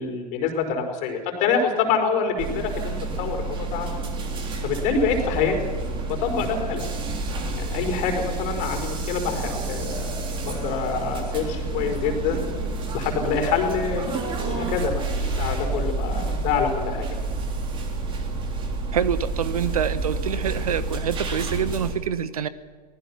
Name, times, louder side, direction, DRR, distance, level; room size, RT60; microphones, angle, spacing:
voice 1, 0.0-3.9 4.6-5.6 6.1-6.9 7.5-12.4 12.9-14.2 14.4-17.1, left 5 dB, 35° left, 4 dB, 4.7 m, -26 dB
sound 1, 2.4-21.9, right 3 dB, 25° right, 3.4 m, -29 dB
voice 2, 18.9-22.5, right 8 dB, 60° right, 15 dB, 1.0 m, -26 dB
24.5 x 19.5 x 5.9 m, 1.5 s
figure-of-eight pair, 100°, 21 cm